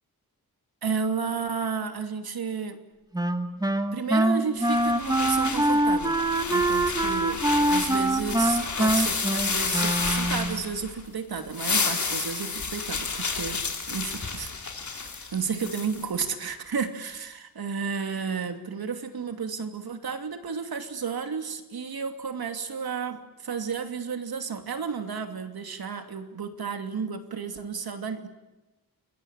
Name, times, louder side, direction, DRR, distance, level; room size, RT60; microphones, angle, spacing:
voice 1, 0.8-2.8 3.9-6.2 6.5-13.6 13.9-14.5 15.1-28.3, right 5 dB, 80° right, 7 dB, 2.8 m, -32 dB
Wind instrument woodwind instrument, 3.1-10.6, right 1 dB, 10° right, 1.6 m, -24 dB
sound 1, 4.6-11.0 11.4-16.0, left 4 dB, 50° left, 4.0 m, -31 dB
29.0 x 21.5 x 9.1 m, 1.1 s
wide cardioid pair, 145°, 36 cm